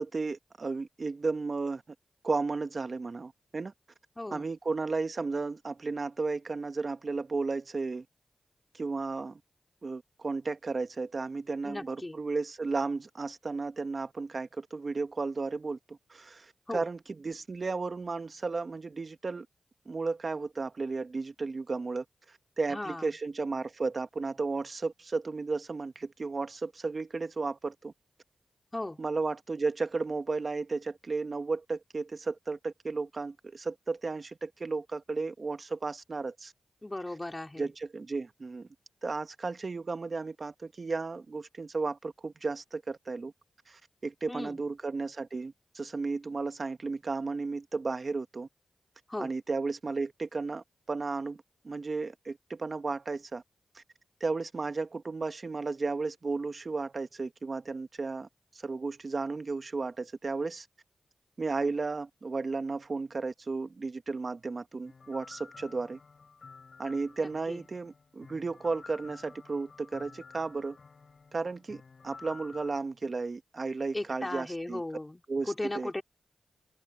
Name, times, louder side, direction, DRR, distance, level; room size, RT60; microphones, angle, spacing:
voice 1, 0.0-1.8 2.2-3.7 4.3-8.0 8.7-9.4 9.8-19.5 19.8-22.0 22.6-27.9 29.0-36.5 37.6-38.7 39.0-43.3 43.7-48.5 49.2-53.4 53.7-53.8 54.2-58.3 58.5-60.7 61.4-66.0 66.8-70.8 71.3-74.8 75.3-76.0, right 3 dB, 55° right, 1.6 m, -34 dB
voice 2, 4.2-4.5 11.6-12.2 16.7-16.8 22.7-23.1 28.7-29.0 36.8-37.7 44.3-44.6 49.1-49.3 67.2-67.6 73.9-76.0, left 1 dB, 25° left, 5.1 m, -37 dB
sound 1, 64.9-72.8, left 4 dB, 65° left, 4.3 m, -52 dB
open air
cardioid pair, 45°, 0 cm